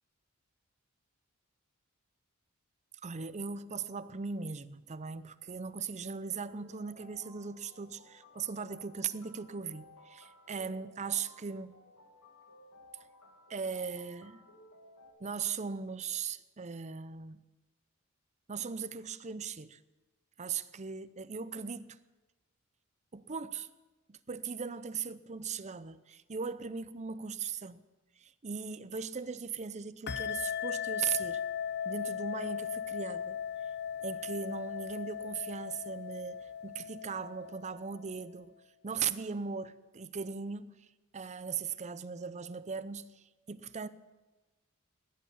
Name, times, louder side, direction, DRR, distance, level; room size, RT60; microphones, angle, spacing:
voice 1, 3.0-11.8 13.5-14.4 15.2-17.4 18.5-19.8 20.4-22.0 23.1-23.7 24.1-27.8 28.2-31.5 31.8-33.4 34.0-38.6 38.8-43.9, right 6 dB, 30° right, 0.6 m, -39 dB
sound 1, 6.5-15.1, left 1 dB, 85° left, 2.7 m, -58 dB
sound 2, 30.1-38.2, left 8 dB, 50° left, 0.7 m, -38 dB
17.5 x 11.0 x 7.3 m
head